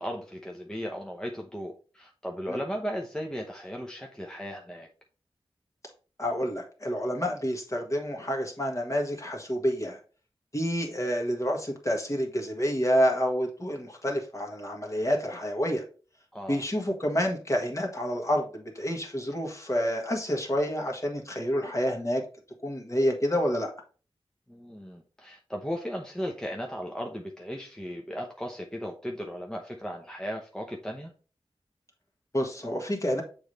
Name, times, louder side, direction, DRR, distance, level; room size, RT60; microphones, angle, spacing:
voice 1, 0.0-4.9 16.3-16.6 24.5-31.1, equal, 5° left, 1 dB, 0.8 m, -36 dB
voice 2, 6.2-10.0 10.5-15.8 16.5-22.2 22.6-23.7 32.3-33.2, equal, 30° left, 1 dB, 1.6 m, -28 dB
7.0 x 3.3 x 4.0 m, 0.37 s
wide cardioid pair, 70°, 10 cm